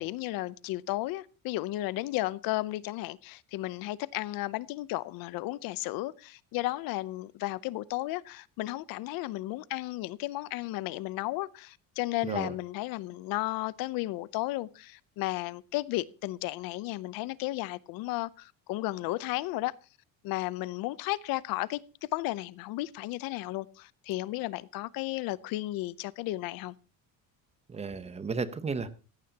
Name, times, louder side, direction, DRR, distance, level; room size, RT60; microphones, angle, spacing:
voice 1, 0.0-19.7 20.2-26.7, left 18 dB, 75° left, 0.7 m, -34 dB
voice 2, 12.2-12.5 27.7-28.9, right 4 dB, 20° right, 0.8 m, -33 dB
17.0 x 15.0 x 2.9 m
cardioid pair, 175°, 35 cm